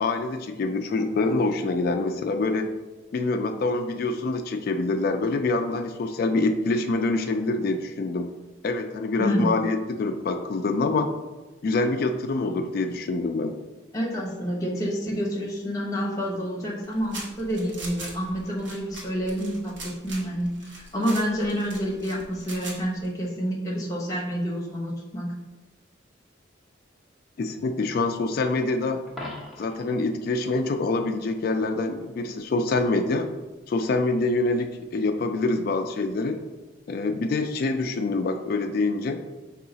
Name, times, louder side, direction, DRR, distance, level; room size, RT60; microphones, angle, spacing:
voice 1, 0.0-2.7 3.1-8.3 8.6-11.1 11.6-13.5 27.4-29.0 29.6-33.3 33.7-36.4 36.9-39.2, left 3 dB, 50° left, 5 dB, 0.3 m, -25 dB
voice 2, 9.2-9.5 13.9-25.3, equal, 15° left, -4 dB, 1.0 m, -28 dB
sound 1, 16.8-23.1, right 2 dB, 65° right, 1.0 m, -41 dB
Coin (dropping), 29.1-29.9 36.0-36.2, left 1 dB, ahead, 0.7 m, -39 dB
4.6 x 2.4 x 3.9 m, 1.2 s
head